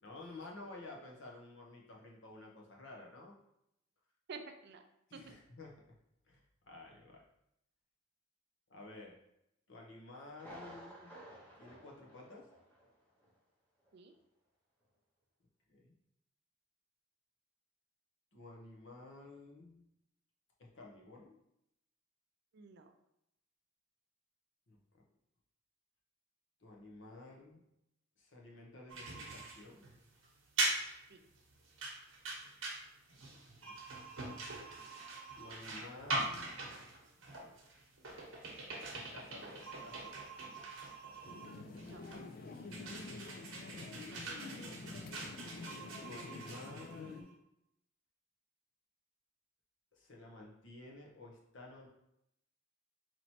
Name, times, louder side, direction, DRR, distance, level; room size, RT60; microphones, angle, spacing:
voice 1, 0.0-3.3 5.1-5.7 6.3-7.2 8.7-9.2 9.7-11.2 11.6-12.5 15.7-15.9 18.3-19.8 20.6-21.4 24.7-24.8 26.6-27.6 28.2-29.8 33.6-33.8 35.3-36.5 37.3-37.6 38.9-40.1 42.5-42.7 46.0-47.4 50.0-51.9, left 2 dB, 60° left, -1 dB, 0.8 m, -52 dB
voice 2, 4.3-4.8 5.1-5.4 13.9-14.1 22.5-22.9 31.1-31.2 41.4-42.0 43.7-43.9, right 4 dB, 55° right, 6 dB, 0.4 m, -51 dB
Thunder, 10.4-12.9 13.2-13.3 13.9-14.0, equal, 10° left, 0.9 m, -53 dB
sound 1, 28.9-47.3, right 2 dB, 70° right, 1.0 m, -42 dB
sound 2, 41.2-47.2, left 3 dB, 45° left, 0.3 m, -48 dB
4.4 x 3.0 x 2.8 m, 0.80 s
head